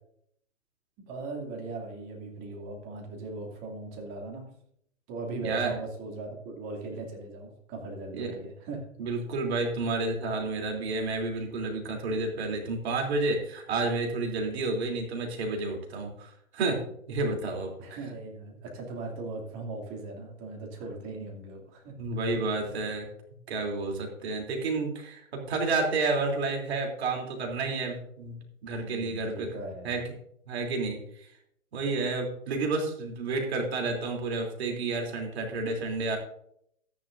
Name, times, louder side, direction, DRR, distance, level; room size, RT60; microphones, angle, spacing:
voice 1, 1.0-4.5 5.1-8.8 17.8-21.9 22.6-22.7 28.8-30.1, right 2 dB, 30° right, 0 dB, 2.6 m, -39 dB
voice 2, 9.0-16.8 17.1-18.0 22.0-23.1 23.5-29.6 29.8-30.0 30.5-31.3 31.7-36.2, right 3 dB, 50° right, 1 dB, 3.3 m, -30 dB
13.5 x 10.5 x 2.6 m, 0.71 s
hypercardioid pair, 135°, 39 cm